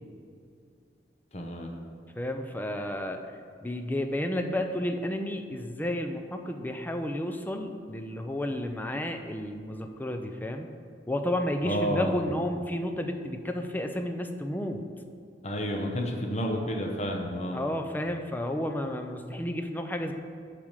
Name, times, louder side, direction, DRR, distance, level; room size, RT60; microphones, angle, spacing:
voice 1, 1.3-1.7 11.6-12.2 15.4-17.6, equal, 40° left, 1 dB, 0.9 m, -30 dB
voice 2, 2.2-3.2 3.6-10.7 11.1-14.8 17.5-20.1, left 1 dB, 10° left, 5 dB, 0.5 m, -31 dB
7.1 x 4.9 x 6.6 m, 2.4 s
head